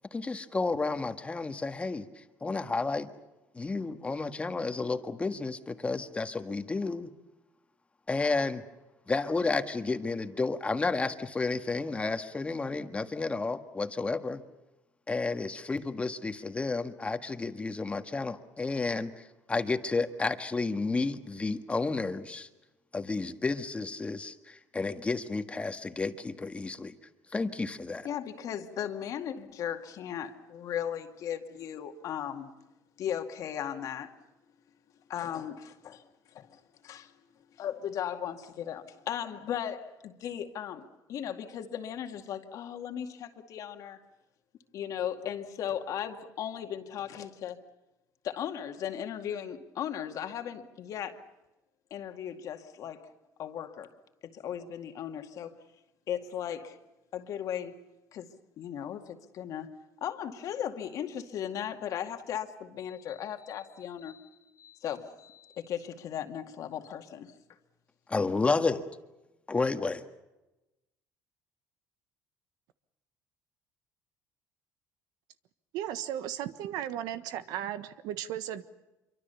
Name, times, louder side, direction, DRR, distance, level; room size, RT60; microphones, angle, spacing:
voice 1, 0.1-2.1 2.4-3.1 3.5-7.1 8.1-8.6 9.1-14.4 15.1-22.5 22.9-26.9 27.3-28.1 68.1-68.8 69.5-70.0, left 3 dB, 20° left, 8 dB, 1.6 m, -31 dB
voice 2, 28.0-32.5 33.0-34.1 35.1-36.0 36.3-37.1 37.6-40.8 41.1-44.0 44.7-47.6 48.2-51.2 51.9-53.0 53.4-53.9 54.2-55.5 56.1-56.8 57.1-57.8 58.1-58.3 58.6-59.7 60.0-67.3, left 9 dB, 60° left, 6 dB, 2.2 m, -37 dB
voice 3, 75.7-78.7, right 11 dB, 80° right, 12 dB, 1.3 m, -35 dB
26.0 x 24.0 x 7.0 m, 1.0 s
cardioid pair, 105°, 7 cm